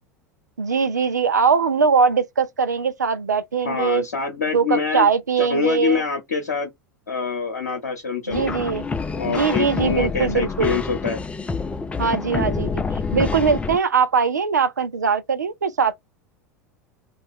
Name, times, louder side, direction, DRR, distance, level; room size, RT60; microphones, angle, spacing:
voice 1, 0.6-4.1 4.5-6.0 8.3-8.8 9.2-10.8 12.0-16.0, right 5 dB, 85° right, 0.4 m, -21 dB
voice 2, 3.6-5.1 5.4-6.7 7.1-8.5 9.2-11.2, left 5 dB, 80° left, 0.7 m, -25 dB
sound 1, 8.3-13.8, left 4 dB, 15° left, 0.4 m, -27 dB
2.4 x 2.1 x 3.4 m
figure-of-eight pair, 80°, 9 cm